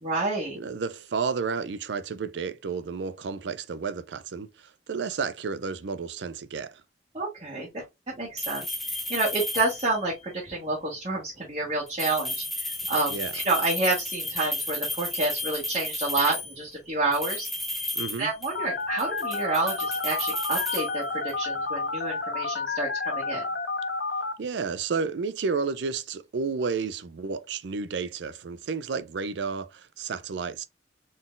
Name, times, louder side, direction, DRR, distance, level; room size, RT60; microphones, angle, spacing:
voice 1, 0.0-0.6 7.1-17.5 18.2-23.4, right 2 dB, 35° right, 1.4 m, -29 dB
voice 2, 0.5-4.5 4.9-6.8 13.1-13.3 18.0-18.3 24.4-30.7, right 5 dB, 85° right, 0.4 m, -31 dB
sound 1, 8.4-10.1 11.9-16.6 17.1-18.7 19.0-21.5, left 1 dB, ahead, 0.7 m, -33 dB
Telephone, 18.5-24.3, left 3 dB, 65° left, 0.5 m, -30 dB
4.0 x 3.8 x 2.5 m
head